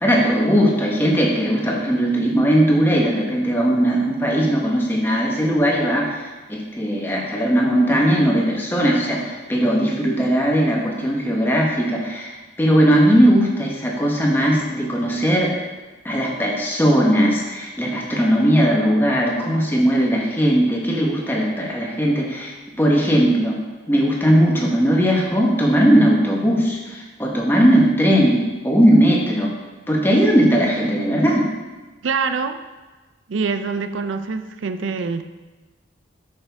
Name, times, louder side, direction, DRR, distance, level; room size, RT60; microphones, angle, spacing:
voice 1, 0.0-12.3 12.6-15.5 16.0-23.6 23.9-29.5 29.9-31.5, equal, 10° left, -2 dB, 1.2 m, -18 dB
voice 2, 32.0-32.6 33.3-35.2, right 5 dB, 85° right, 9 dB, 0.5 m, -24 dB
8.4 x 6.6 x 3.5 m, 1.2 s
head